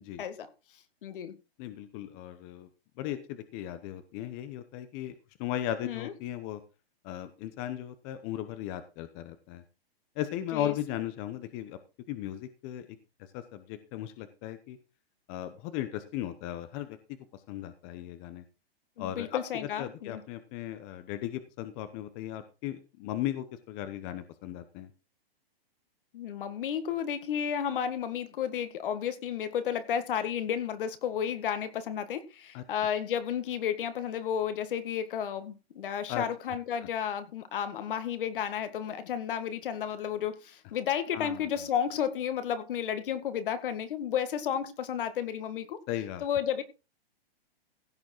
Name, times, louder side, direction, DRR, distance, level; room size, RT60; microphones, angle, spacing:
voice 1, 0.2-0.5 1.0-1.4 5.8-6.1 10.5-10.7 19.0-20.2 26.1-45.8 46.2-46.6, left 8 dB, 60° left, 2.0 m, -32 dB
voice 2, 1.6-2.7 3.0-6.6 7.0-9.6 10.2-11.8 12.1-13.0 13.3-14.8 15.3-17.0 17.3-18.4 19.0-24.9 32.5-32.6 36.1-36.6 36.8-36.9 41.1-41.5 45.9-46.2, left 12 dB, 25° left, 0.9 m, -37 dB
16.0 x 7.1 x 4.5 m
hypercardioid pair, 150°, 31 cm